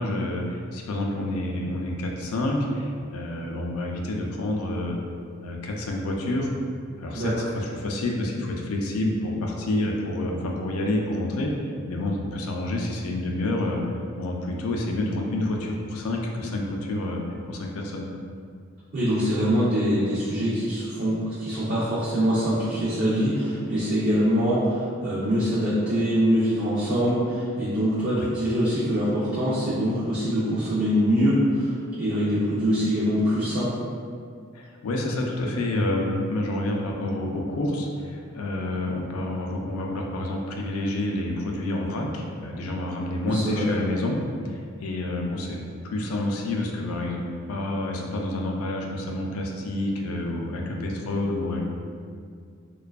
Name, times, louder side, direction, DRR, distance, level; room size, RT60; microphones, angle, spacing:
voice 1, 0.0-5.0 5.4-6.5 7.0-11.5 11.9-13.8 14.2-18.1 28.2-28.3 34.5-45.6 45.8-51.6, left 1 dB, 80° left, 0 dB, 0.4 m, -28 dB
voice 2, 18.9-31.7 32.0-33.7 43.3-43.7, equal, 45° right, -9 dB, 0.4 m, -24 dB
2.5 x 2.2 x 2.3 m, 2.2 s
head